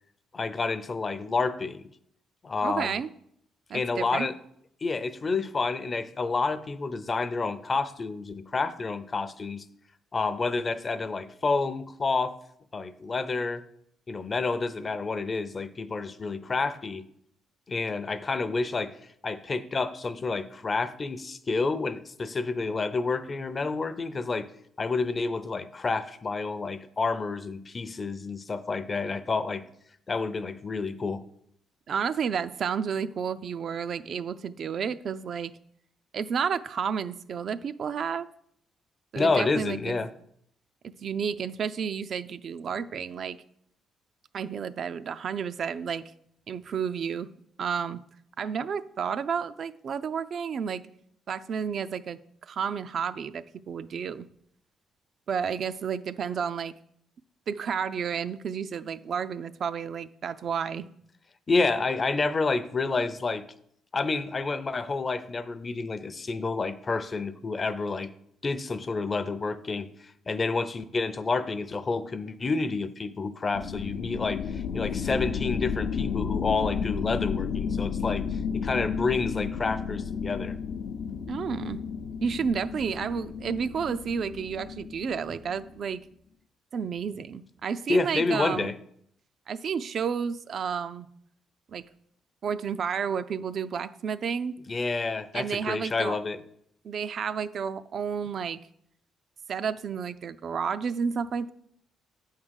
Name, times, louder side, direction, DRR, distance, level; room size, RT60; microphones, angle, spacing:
voice 1, 0.3-1.9 2.4-3.0 3.7-4.3 4.8-9.6 10.1-12.3 12.7-13.6 14.1-17.0 17.7-19.0 19.2-24.5 24.8-29.6 30.1-31.2 39.2-40.1 61.5-63.5 63.9-68.1 68.4-69.9 70.3-80.6 87.9-88.7 94.7-96.4, left 4 dB, 35° left, 13 dB, 0.5 m, -29 dB
voice 2, 2.6-3.1 3.7-4.3 31.9-35.5 36.1-38.3 39.1-40.0 41.0-43.4 44.3-46.0 46.5-47.3 47.6-48.0 48.4-50.8 51.3-54.3 55.3-56.7 57.5-60.8 81.3-81.8 82.2-86.0 86.7-88.7 89.5-91.1 91.7-91.8 92.4-94.6 95.3-96.2 96.8-98.6 99.5-101.5, right 6 dB, 55° right, 14 dB, 0.4 m, -31 dB
sound 1, 73.5-85.8, left 6 dB, 75° left, 0.6 m, -32 dB
8.4 x 3.7 x 6.3 m, 0.71 s
cardioid pair, 90°, 0 cm